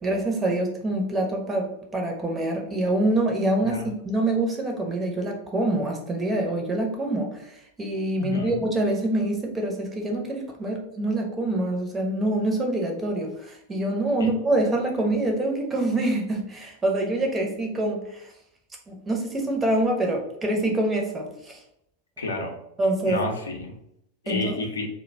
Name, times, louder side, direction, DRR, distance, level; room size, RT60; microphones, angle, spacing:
voice 1, 0.0-3.8 4.0-18.3 18.9-21.6 22.8-23.2 24.3-24.6, right 1 dB, 15° right, 1 dB, 0.6 m, -25 dB
voice 2, 8.2-8.5 22.2-22.5 23.0-23.7 24.2-24.9, left 2 dB, 70° left, 1 dB, 0.5 m, -30 dB
2.3 x 2.1 x 3.3 m, 0.77 s
figure-of-eight pair, 90°, 0 cm